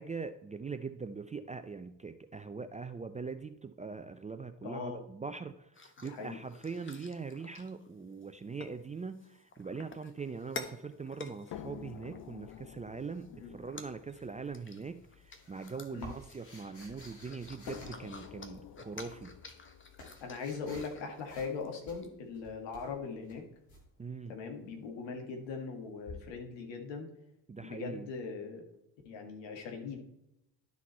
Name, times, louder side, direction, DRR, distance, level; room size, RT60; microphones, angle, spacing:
voice 1, 0.0-19.3 24.0-24.3 27.5-28.1, right 5 dB, 15° right, 9 dB, 0.5 m, -42 dB
voice 2, 4.6-5.0 6.0-6.4 13.4-13.5 15.9-16.1 20.2-23.4 24.3-27.1 27.6-28.7 29.1-30.0, left 5 dB, 65° left, 3 dB, 1.8 m, -40 dB
sound 1, 5.7-8.2 8.6-8.7 9.2-12.6 13.0-13.3 13.6-21.3 21.6-21.8 22.0-22.1, left 4 dB, 25° left, 1.2 m, -50 dB
sound 2, 11.5-16.7 17.7-21.6 22.6-22.7 23.1-23.2, left 10 dB, 45° left, 0.7 m, -51 dB
sound 3, 14.9-18.7 19.4-21.0 21.3-21.6 21.8-23.8 26.1-26.2, left 1 dB, 90° left, 2.0 m, -52 dB
12.0 x 4.1 x 4.2 m, 0.84 s
hypercardioid pair, 45°, 48 cm